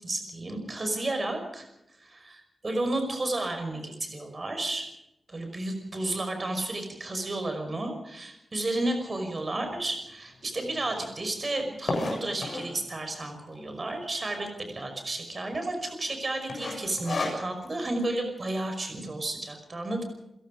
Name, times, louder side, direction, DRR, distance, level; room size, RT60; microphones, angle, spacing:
voice 1, 0.0-1.7 2.0-4.9 5.3-20.0, right 2 dB, 30° right, 6 dB, 5.3 m, -32 dB
sound 1, 9.4-9.5 10.1-10.2 10.3-10.4 10.7-12.8 13.5-13.9 14.2-14.3 14.5-14.6 15.2-15.5 15.8-16.1 16.5-17.8, left 3 dB, 45° left, 7.0 m, -32 dB
29.5 x 16.5 x 5.3 m, 0.86 s
wide cardioid pair, 160°, 0 cm